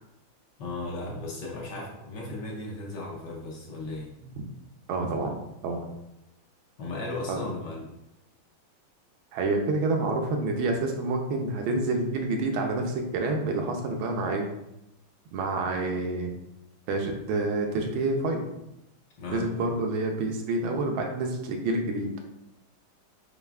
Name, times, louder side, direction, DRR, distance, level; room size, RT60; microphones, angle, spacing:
voice 1, 0.6-4.1 6.8-7.9 19.2-19.5, left 2 dB, 70° left, -2 dB, 1.2 m, -36 dB
voice 2, 4.9-5.9 7.3-7.4 9.3-14.5 15.3-16.3 16.9-18.4 19.3-22.3, right 2 dB, 75° right, 2 dB, 1.3 m, -28 dB
6.8 x 2.4 x 2.2 m, 0.86 s
omnidirectional pair, 2.3 m